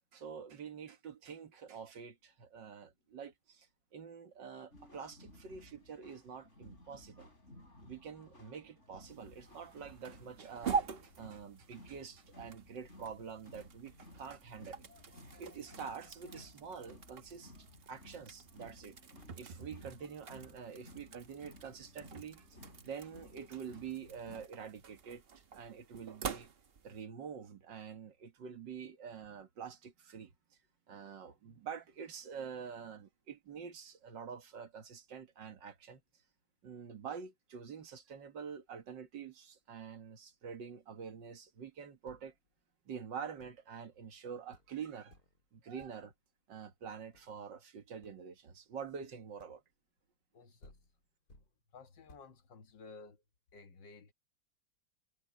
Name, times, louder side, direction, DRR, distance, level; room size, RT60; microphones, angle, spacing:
voice 1, 0.1-7.3 7.8-14.9 15.3-19.0 19.4-22.6 22.8-25.2 25.5-26.5 26.8-30.3 30.9-36.0 36.6-42.3 42.9-45.2 45.5-46.1 46.5-49.6, right 7 dB, 80° right, 2.2 m, -47 dB
sound 1, 4.7-24.5, left 1 dB, 40° left, 6.5 m, -57 dB
sound 2, 9.0-27.0, right 6 dB, 40° right, 1.0 m, -45 dB
sound 3, 42.0-42.5 43.4-43.7 44.2-44.3 44.5-44.8 45.1-45.5 45.8-46.2 46.8-47.4 48.0-48.3 49.4-49.8 50.3-50.4 50.6-51.6 52.1-52.4, left 2 dB, 55° left, 4.9 m, -62 dB
voice 2, 50.3-50.8 51.7-53.2 53.5-54.1, left 4 dB, 85° left, 2.3 m, -55 dB
omnidirectional pair, 1.9 m